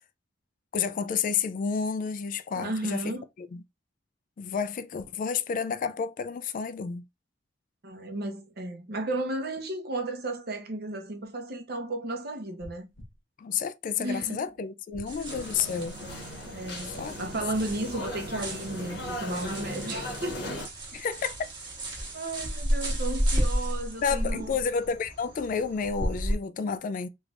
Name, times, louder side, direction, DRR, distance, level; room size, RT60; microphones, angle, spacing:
voice 1, 0.7-3.0 3.4-3.6 4.4-7.0 13.4-16.0 16.9-17.1 20.9-21.4 24.0-27.1, left 6 dB, 45° left, 0.3 m, -30 dB
voice 2, 2.6-3.2 7.8-12.9 14.0-14.4 16.5-20.4 22.1-24.5, right 2 dB, 55° right, 0.9 m, -34 dB
sound 1, 12.6-13.2 14.9-15.5 17.3-17.8, left 1 dB, 85° left, 0.9 m, -47 dB
sound 2, 15.1-26.4, equal, 25° right, 1.2 m, -33 dB
sound 3, 15.3-20.7, left 1 dB, 60° left, 1.1 m, -38 dB
3.2 x 3.2 x 2.5 m
head